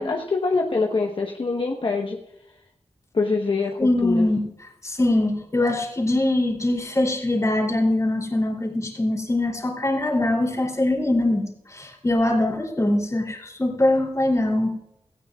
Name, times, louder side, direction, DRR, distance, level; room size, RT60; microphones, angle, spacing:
voice 1, 0.0-2.2 3.1-4.3, left 3 dB, 55° left, 1 dB, 1.1 m, -24 dB
voice 2, 3.8-4.4 4.8-14.7, left 1 dB, 30° left, 0 dB, 3.1 m, -22 dB
17.5 x 14.0 x 2.4 m, 0.83 s
wide cardioid pair, 70°, 10 cm